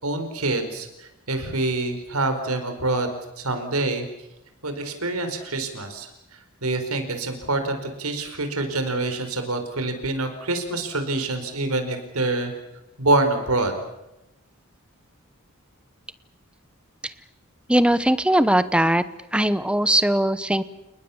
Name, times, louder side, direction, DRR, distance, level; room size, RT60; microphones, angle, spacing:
voice 1, 0.0-4.0 4.6-6.1 6.6-12.5 13.0-13.8, right 2 dB, 85° right, 7 dB, 4.7 m, -26 dB
voice 2, 17.7-19.0 19.3-20.6, right 1 dB, 5° right, 14 dB, 0.9 m, -20 dB
29.0 x 20.0 x 7.3 m, 0.92 s
head